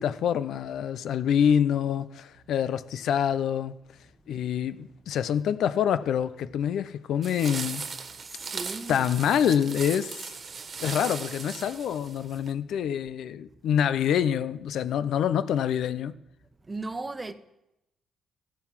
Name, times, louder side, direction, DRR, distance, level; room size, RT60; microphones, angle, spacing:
voice 1, 0.0-3.8 4.3-7.9 8.9-10.3 10.8-16.2, left 9 dB, 75° left, 0.7 m, -26 dB
sound 1, 7.2-12.5, right 5 dB, 45° right, 1.5 m, -38 dB
voice 2, 8.2-9.1 16.6-17.3, right 3 dB, 20° right, 1.0 m, -37 dB
14.5 x 10.5 x 7.4 m
cardioid pair, 90°, 0 cm